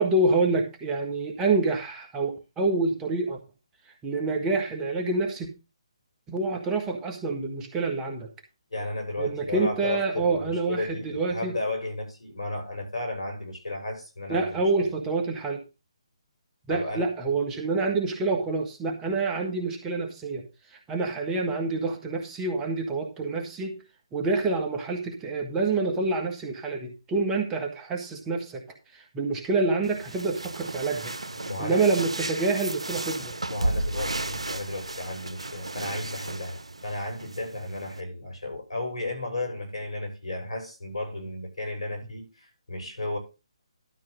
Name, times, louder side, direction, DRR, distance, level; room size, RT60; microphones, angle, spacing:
voice 1, 0.0-3.4 4.0-5.5 6.3-8.3 9.2-11.5 14.3-15.6 16.7-20.4 20.9-23.8 24.1-28.6 28.9-31.1 31.6-33.3, right 3 dB, 15° right, 1.7 m, -27 dB
voice 2, 8.7-14.7 16.7-17.1 31.4-31.9 33.5-43.2, left 2 dB, 75° left, 6.0 m, -34 dB
sound 1, 29.8-38.0, right 2 dB, 75° right, 1.0 m, -34 dB
12.5 x 4.7 x 6.3 m
figure-of-eight pair, 140°, 3 cm